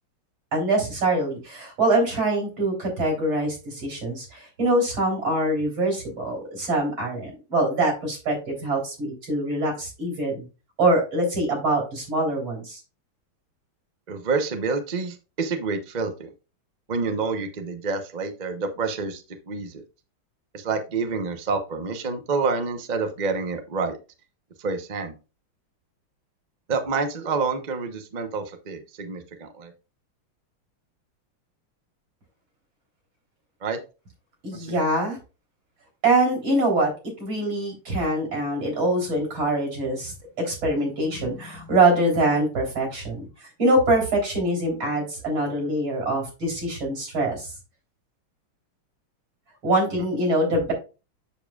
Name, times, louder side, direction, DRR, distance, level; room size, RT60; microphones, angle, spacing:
voice 1, 0.5-10.5 10.8-12.8 34.4-35.2 36.0-36.9 37.2-47.5 49.6-50.7, right 2 dB, 65° right, 0 dB, 4.3 m, -24 dB
voice 2, 14.1-16.3 16.9-19.8 20.5-24.0 24.6-25.1 26.7-29.7 33.6-33.8 34.5-34.8, right 4 dB, 40° right, 6 dB, 0.6 m, -28 dB
7.7 x 7.0 x 2.4 m, 0.30 s
omnidirectional pair, 2.3 m